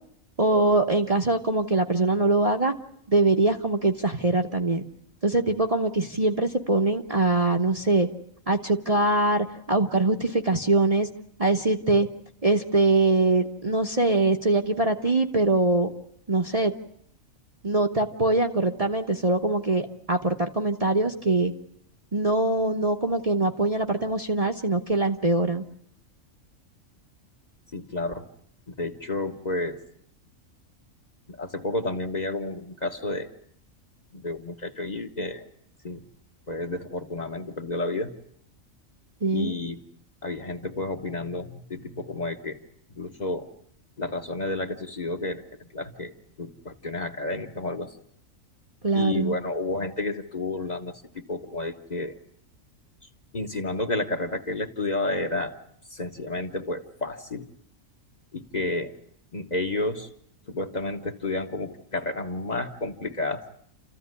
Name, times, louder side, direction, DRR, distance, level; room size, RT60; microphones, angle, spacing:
voice 1, 0.4-2.7 3.1-4.8 5.2-8.1 8.5-11.1 11.4-12.1 12.4-15.9 16.3-16.7 17.6-21.5 22.1-25.6 39.2-39.6 48.8-49.3, right 2 dB, 30° right, 3 dB, 1.0 m, -23 dB
voice 2, 27.7-28.3 28.7-29.8 31.3-33.3 34.1-35.5 35.8-36.0 36.5-38.1 39.3-39.8 40.2-42.6 42.9-43.5 44.0-46.1 46.4-48.0 48.9-52.1 53.3-55.5 55.9-57.5 58.3-58.9 59.3-60.1 60.5-63.4, left 2 dB, 35° left, 4 dB, 1.4 m, -31 dB
29.0 x 14.5 x 9.7 m, 0.73 s
omnidirectional pair, 1.4 m